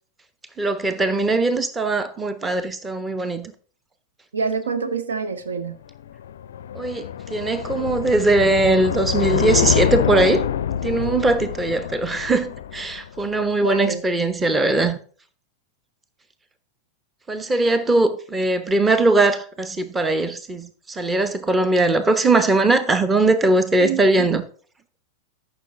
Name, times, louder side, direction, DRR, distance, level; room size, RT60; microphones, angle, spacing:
voice 1, 0.6-3.5 6.7-10.5 10.8-15.0 17.3-24.4, right 2 dB, 15° right, 1.0 m, -20 dB
voice 2, 4.3-5.8 13.6-14.0 23.8-24.3, right 5 dB, 70° right, 1.0 m, -27 dB
sound 1, 5.9-13.3, left 9 dB, 60° left, 0.4 m, -25 dB
13.5 x 6.1 x 3.7 m
figure-of-eight pair, 90°, 0 cm